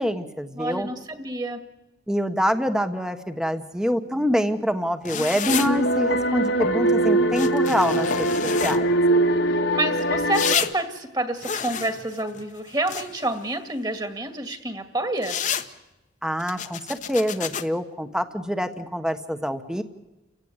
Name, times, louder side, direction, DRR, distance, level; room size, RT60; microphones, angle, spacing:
voice 1, 0.0-0.9 2.1-8.3 8.6-8.8 16.2-19.8, equal, 5° right, 8 dB, 1.2 m, -25 dB
voice 2, 0.5-1.6 9.7-15.4, right 1 dB, 20° right, 8 dB, 2.1 m, -28 dB
sound 1, 5.0-5.7 7.3-8.8 10.3-10.7 11.4-13.3 15.2-15.7 16.4-17.6, left 7 dB, 40° left, 1.2 m, -29 dB
sound 2, 5.5-10.6, right 1 dB, 70° left, 2.0 m, -22 dB
30.0 x 16.5 x 9.7 m, 1.0 s
head